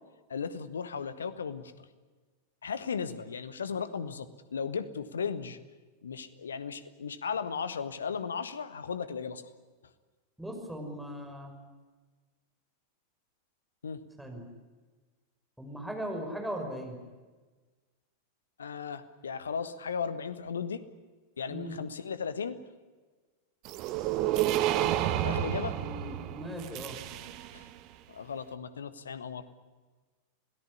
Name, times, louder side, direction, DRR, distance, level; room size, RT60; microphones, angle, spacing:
voice 1, 0.3-1.9 2.6-5.6 6.0-9.5 13.8-14.0 18.6-20.8 21.4-22.5 25.2-25.8 27.5-27.6 28.1-29.4, left 6 dB, 70° left, 13 dB, 1.5 m, -36 dB
voice 2, 10.4-11.5 14.2-14.4 15.6-17.0 21.5-21.8 25.7-27.0, equal, 5° right, 2 dB, 5.9 m, -38 dB
sound 1, 23.7-27.7, right 12 dB, 40° right, 1.6 m, -30 dB
27.0 x 18.0 x 9.8 m, 1.3 s
figure-of-eight pair, 90°, 0 cm